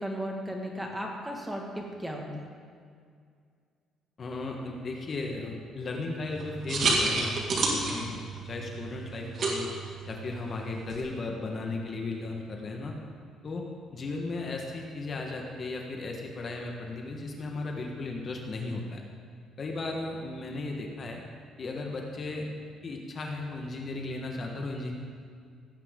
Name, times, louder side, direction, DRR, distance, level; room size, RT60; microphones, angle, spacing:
voice 1, 0.0-2.5, equal, 5° right, 0 dB, 1.6 m, -35 dB
voice 2, 4.2-9.7 10.1-12.9 13.4-13.6 13.9-19.0 19.6-21.2 21.6-22.5 22.8-24.9, left 3 dB, 35° left, 1 dB, 1.3 m, -35 dB
sound 1, 6.3-11.0, right 3 dB, 50° right, 1.9 m, -31 dB
16.5 x 8.3 x 3.7 m, 2.1 s
cardioid pair, 120°, 0 cm